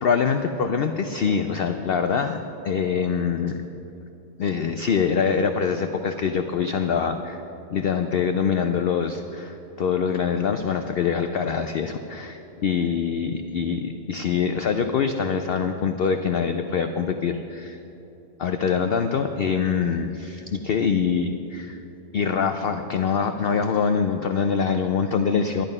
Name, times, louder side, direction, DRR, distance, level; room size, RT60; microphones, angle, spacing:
voice 1, 0.0-2.4 2.6-3.6 4.4-7.4 7.7-17.8 18.4-21.8 22.1-25.7, left 6 dB, 85° left, 7 dB, 0.5 m, -24 dB
12.0 x 11.0 x 5.4 m, 2.9 s
omnidirectional pair, 1.6 m